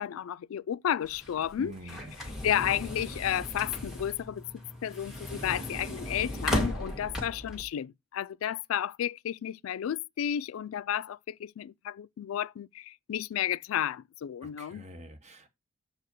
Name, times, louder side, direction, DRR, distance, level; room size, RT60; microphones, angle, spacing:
voice 1, 0.0-1.7 2.4-14.8, left 10 dB, 90° left, 0.3 m, -32 dB
sound 1, 1.0-7.6, left 1 dB, ahead, 2.0 m, -36 dB
voice 2, 1.6-2.1 14.4-15.5, right 2 dB, 35° right, 1.2 m, -46 dB
6.8 x 4.8 x 4.5 m
head